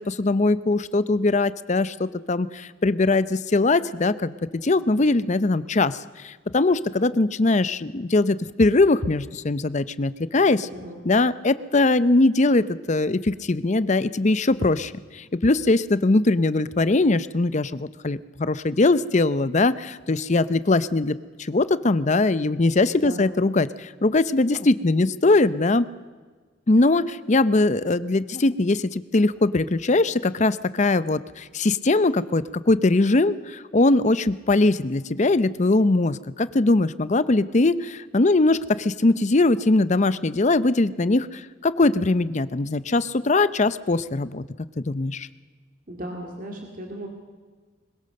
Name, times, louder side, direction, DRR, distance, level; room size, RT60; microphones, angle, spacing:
voice 1, 0.0-10.7 11.1-25.9 26.7-44.4 44.8-45.3, left 2 dB, 35° left, 15 dB, 0.6 m, -21 dB
voice 2, 10.6-11.0 22.9-23.3 45.9-47.1, equal, 45° right, 1 dB, 2.3 m, -36 dB
21.5 x 20.5 x 6.6 m, 1.4 s
head